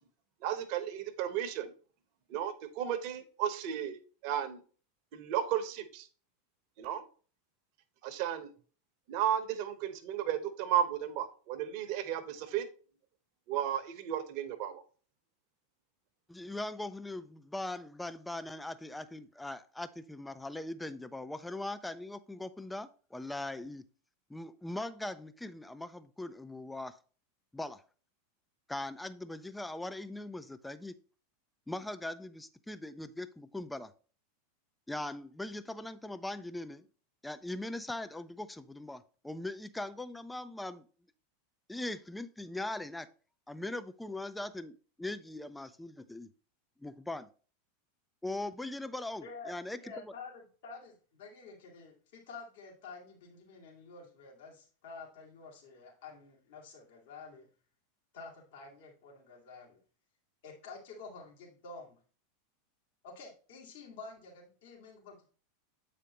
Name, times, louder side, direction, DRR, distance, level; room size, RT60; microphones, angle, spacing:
voice 1, 0.4-1.7 2.3-4.6 5.1-6.1 6.8-7.0 8.0-8.5 9.1-12.7 13.5-14.8, right 10 dB, 50° right, 1.0 m, -34 dB
voice 2, 16.3-23.8 24.3-27.0 27.5-27.8 28.7-31.0 31.7-33.9 34.9-36.9 37.2-40.9 41.7-43.1 43.5-46.3 46.8-47.3 48.2-50.1, left 2 dB, 5° left, 0.5 m, -40 dB
voice 3, 49.2-57.5 58.1-59.8 60.4-62.0 63.0-65.3, left 4 dB, 60° left, 2.5 m, -49 dB
8.3 x 5.0 x 3.0 m
figure-of-eight pair, 85°, 0 cm